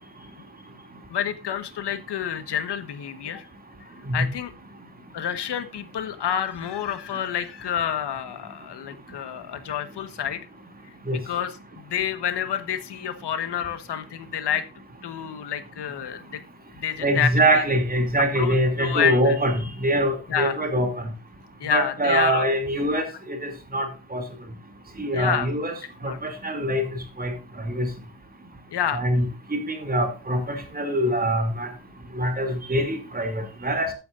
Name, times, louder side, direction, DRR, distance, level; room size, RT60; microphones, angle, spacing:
voice 1, 1.1-3.5 4.1-4.5 5.1-10.4 11.1-14.6 15.0-16.4 16.8-17.6 18.3-19.3 20.3-20.7 21.6-22.5 22.9-23.0 25.1-25.5 26.0-26.2 28.7-29.0, left 9 dB, 75° left, 11 dB, 1.4 m, -29 dB
voice 2, 17.0-20.9 21.7-24.2 25.0-25.7 26.0-26.9 27.2-27.3 27.7-27.9 28.9-29.2 29.5-31.7 32.1-33.9, right 1 dB, 20° right, 5 dB, 2.7 m, -24 dB
14.5 x 9.4 x 2.5 m, 0.30 s
wide cardioid pair, 170°, 41 cm